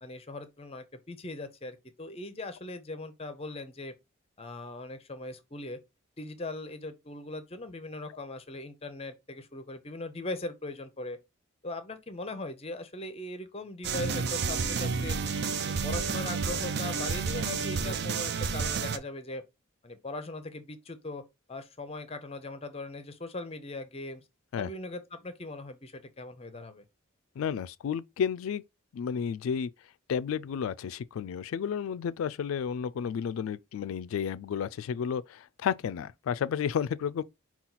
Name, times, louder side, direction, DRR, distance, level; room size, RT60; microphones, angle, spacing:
voice 1, 0.0-3.9 4.4-5.8 6.2-11.2 11.6-15.2 15.6-19.4 19.8-21.2 21.5-24.2 24.6-26.8, left 2 dB, 30° left, 0.6 m, -40 dB
sound 1, 13.8-19.0, right 5 dB, 55° right, 0.4 m, -30 dB
voice 2, 27.4-28.6 28.9-29.7 30.1-37.2, left 7 dB, 80° left, 0.3 m, -32 dB
5.7 x 2.4 x 3.9 m
head